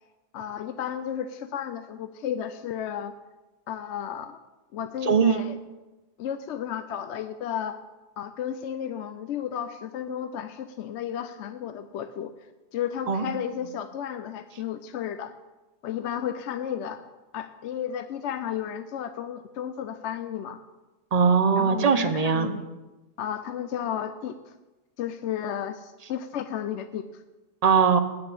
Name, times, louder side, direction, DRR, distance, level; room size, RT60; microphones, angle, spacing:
voice 1, 0.3-3.1 3.7-4.4 4.7-5.6 6.2-7.8 8.2-12.3 12.7-15.3 15.8-17.0 17.3-20.6 21.6-22.6 23.2-24.5 25.0-27.2, left 9 dB, 65° left, 10 dB, 0.8 m, -33 dB
voice 2, 5.0-5.4 13.1-13.3 21.1-22.5 27.6-28.0, right 6 dB, 35° right, 9 dB, 0.8 m, -20 dB
9.1 x 6.8 x 8.4 m, 1.1 s
omnidirectional pair, 1.3 m